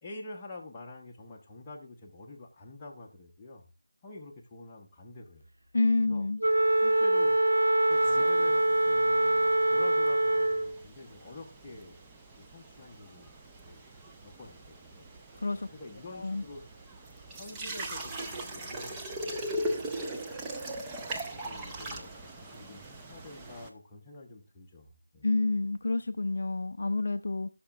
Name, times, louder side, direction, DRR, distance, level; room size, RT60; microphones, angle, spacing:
voice 1, 0.0-3.6 4.0-5.5 6.0-6.3 6.8-7.4 7.9-12.0 12.4-13.3 13.6-13.8 14.2-15.1 15.5-16.6 17.4-20.1 20.5-25.3, left 2 dB, 15° left, -2 dB, 0.9 m, -47 dB
voice 2, 5.7-6.4 15.4-15.7 16.1-16.4 25.2-27.5, left 3 dB, 50° left, 9 dB, 0.4 m, -28 dB
Wind instrument woodwind instrument, 6.4-10.8, right 1 dB, 65° right, 0.4 m, -24 dB
sound 1, 7.9-23.7, right 1 dB, 10° right, 0.5 m, -40 dB
14.0 x 5.9 x 2.4 m, 0.31 s
figure-of-eight pair, 165°, 0 cm